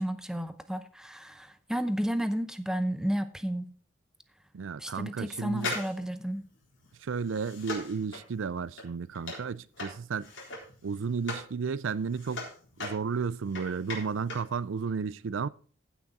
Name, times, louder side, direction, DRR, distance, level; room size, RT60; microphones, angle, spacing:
voice 1, 0.0-3.7 4.8-6.5, equal, 5° right, 0.7 m, -32 dB
voice 2, 4.5-5.8 7.0-10.3 10.8-12.5 12.8-15.5, right 5 dB, 85° right, 0.5 m, -33 dB
sound 1, 5.5-11.5 11.9-14.5 14.8-14.9, left 2 dB, 70° left, 4.0 m, -40 dB
15.5 x 6.1 x 4.1 m
head